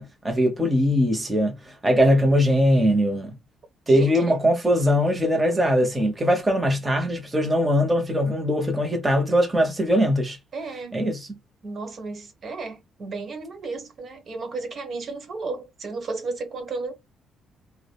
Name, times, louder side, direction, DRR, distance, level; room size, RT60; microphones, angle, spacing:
voice 1, 0.0-3.4 3.9-10.4 10.9-11.2, equal, 15° right, 0.9 m, -21 dB
voice 2, 3.9-4.4 10.5-11.1 11.6-16.9, right 3 dB, 50° right, 1.3 m, -33 dB
4.7 x 2.1 x 2.3 m
cardioid pair, 90°, 0 cm